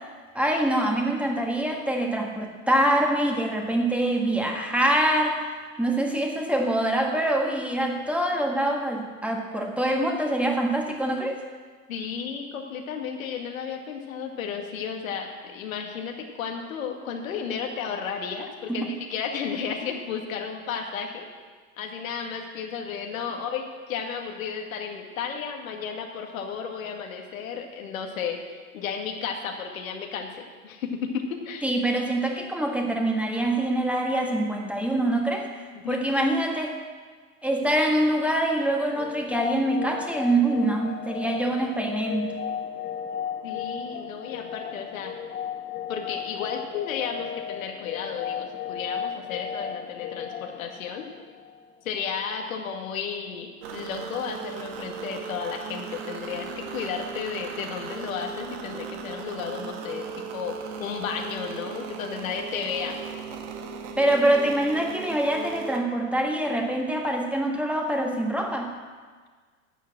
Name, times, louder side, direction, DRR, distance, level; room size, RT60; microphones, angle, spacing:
voice 1, 0.4-5.4 5.8-11.4 18.7-19.0 31.6-35.5 35.9-36.7 37.4-42.3 64.0-68.7, right 1 dB, 5° right, 1 dB, 1.7 m, -25 dB
voice 2, 11.9-21.3 21.8-28.4 28.7-31.7 35.8-36.0 43.4-45.1 45.9-51.1 51.8-63.0, left 6 dB, 70° left, 2 dB, 2.0 m, -33 dB
sound 1, 38.9-51.7, left 8 dB, 25° left, 1.0 m, -35 dB
sound 2, 53.6-65.8, right 6 dB, 60° right, 1.6 m, -37 dB
11.5 x 7.4 x 7.7 m, 1.5 s
hypercardioid pair, 95°, 41 cm